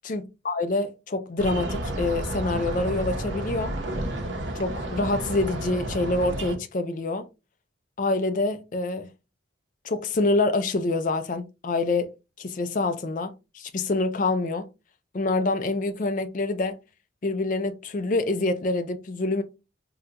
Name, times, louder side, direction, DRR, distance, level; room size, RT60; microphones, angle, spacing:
voice 1, 0.0-3.7 4.5-7.3 8.0-9.1 9.8-14.7 15.1-16.8 17.2-19.4, left 2 dB, 45° left, 0.4 m, -26 dB
sound 1, 1.4-6.6, right 1 dB, 75° right, 0.7 m, -31 dB
3.7 x 2.2 x 2.8 m
head